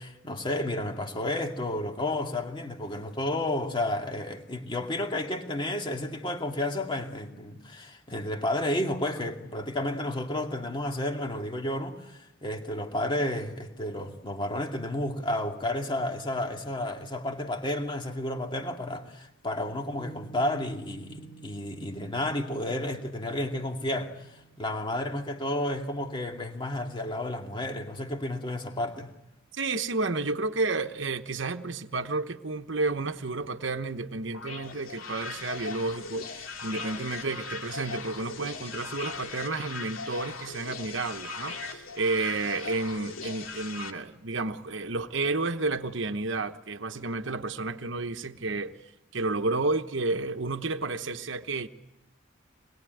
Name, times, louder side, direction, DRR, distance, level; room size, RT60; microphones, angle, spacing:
voice 1, 0.0-24.3 24.6-29.1, left 1 dB, 25° left, 2.3 m, -31 dB
Piano, 19.9-26.6, right 4 dB, 40° left, 2.3 m, -52 dB
voice 2, 29.5-48.8 49.1-51.7, right 3 dB, 60° right, 1.1 m, -31 dB
sound 1, 34.3-43.9, left 4 dB, 80° left, 2.5 m, -39 dB
25.5 x 21.5 x 9.3 m
head